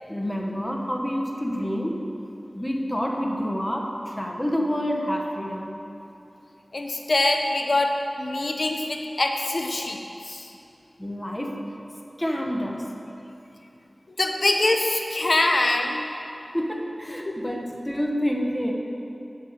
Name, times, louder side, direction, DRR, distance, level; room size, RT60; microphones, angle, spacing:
voice 1, 0.1-2.1 2.5-5.7 11.0-11.6 12.2-12.9 16.5-18.7, equal, 15° left, 1 dB, 1.4 m, -28 dB
voice 2, 6.7-10.5 14.2-16.1 17.3-17.5, left 2 dB, 65° left, 3 dB, 1.0 m, -24 dB
8.1 x 8.0 x 8.1 m, 2.9 s
wide cardioid pair, 50°, 0 cm